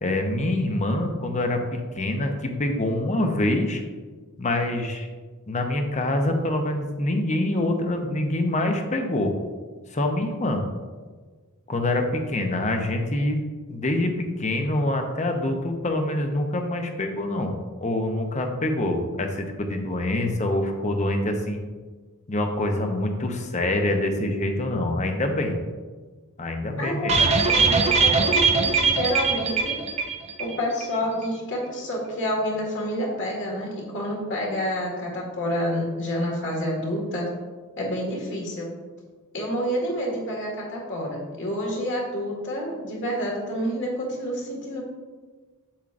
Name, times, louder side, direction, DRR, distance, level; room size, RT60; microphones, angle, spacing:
voice 1, 0.0-3.8 4.4-5.1 5.5-9.3 9.9-10.6 11.7-13.4 13.7-17.5 17.8-21.6 22.3-25.6 26.4-27.2, left 1 dB, 30° left, 4 dB, 0.7 m, -25 dB
voice 2, 26.8-29.8 30.4-37.3 37.8-38.7 39.3-44.8, equal, 55° left, -2 dB, 1.8 m, -28 dB
sound 1, 27.1-30.6 30.8-30.9 31.2-31.3, right 4 dB, 30° right, 0.5 m, -21 dB
7.2 x 7.2 x 2.5 m, 1.4 s
head